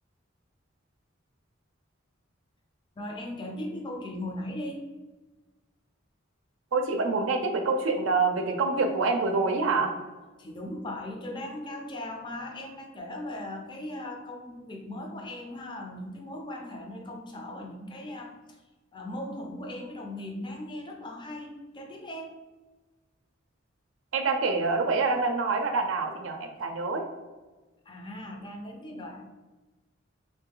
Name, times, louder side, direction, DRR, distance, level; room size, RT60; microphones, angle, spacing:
voice 1, 3.0-4.8 10.4-18.6 18.9-22.3 27.9-29.3, left 1 dB, 25° left, 2 dB, 0.5 m, -38 dB
voice 2, 6.7-9.9 24.1-27.0, right 3 dB, 70° right, 5 dB, 0.5 m, -26 dB
3.2 x 2.6 x 3.7 m, 1.2 s
head